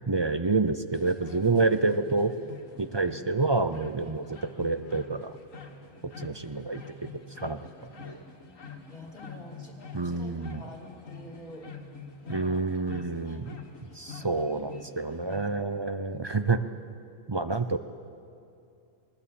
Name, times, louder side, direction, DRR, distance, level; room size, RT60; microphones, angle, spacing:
voice 1, 0.1-2.3 2.8-5.4 6.2-7.1 7.4-8.2 9.9-10.6 12.3-13.5 14.0-16.6 17.3-17.8, right 3 dB, 35° right, 10 dB, 0.4 m, -28 dB
sound 1, 0.9-15.5, left 4 dB, 80° left, 2.1 m, -46 dB
voice 2, 3.0-3.3 8.9-11.7 12.3-12.7 13.0-13.4 14.2-15.4 16.0-16.5 17.6-17.7, left 1 dB, 30° left, 1 dB, 2.7 m, -48 dB
20.5 x 20.0 x 8.5 m, 2.5 s
omnidirectional pair, 1.3 m